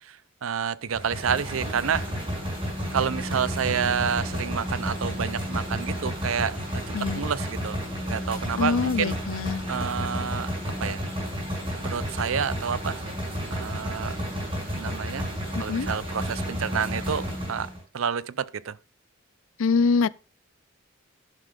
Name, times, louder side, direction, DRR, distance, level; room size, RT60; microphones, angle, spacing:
voice 1, 0.0-2.3 2.9-6.8 7.1-7.8 8.1-9.2 9.7-10.5 10.8-11.1 11.8-13.2 13.5-14.2 14.7-15.3 15.6-18.8, right 7 dB, 90° right, 0.5 m, -29 dB
sound 1, 0.9-17.8, equal, 25° right, 5.9 m, -31 dB
voice 2, 8.6-9.6 15.5-15.9 19.6-20.1, left 5 dB, 80° left, 0.4 m, -24 dB
12.0 x 11.5 x 2.5 m
head